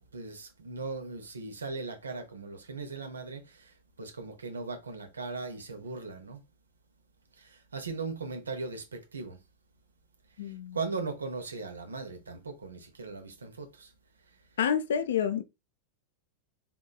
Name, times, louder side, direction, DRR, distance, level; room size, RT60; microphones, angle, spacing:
voice 1, 0.0-6.4 7.4-9.4 10.7-13.9, right 4 dB, 75° right, 0.7 m, -38 dB
voice 2, 10.4-10.8 14.6-15.4, left 8 dB, 60° left, 0.4 m, -28 dB
3.7 x 2.9 x 2.2 m
figure-of-eight pair, 90°, 0 cm